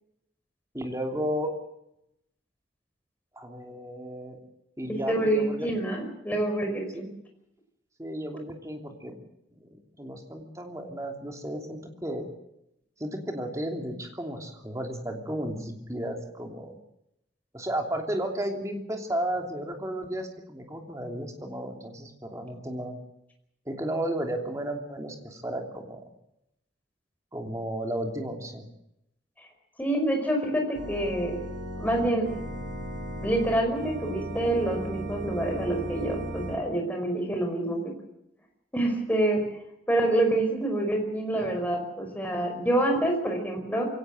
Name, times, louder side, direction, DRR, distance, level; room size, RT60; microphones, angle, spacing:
voice 1, 0.7-1.5 3.4-4.4 4.8-5.7 8.0-9.2 9.6-9.7 10.0-12.3 13.0-16.8 17.5-23.0 23.7-26.1 27.3-28.7 41.3-41.4, right 1 dB, 20° right, 3 dB, 3.0 m, -33 dB
voice 2, 4.8-7.1 29.4-29.5 29.8-31.4 31.8-32.3 33.2-37.9 38.7-39.4 39.9-43.9, right 1 dB, 10° left, 2 dB, 5.2 m, -27 dB
Organ, 30.8-36.6, right 1 dB, 80° right, 5.1 m, -36 dB
23.0 x 17.5 x 7.8 m, 0.82 s
head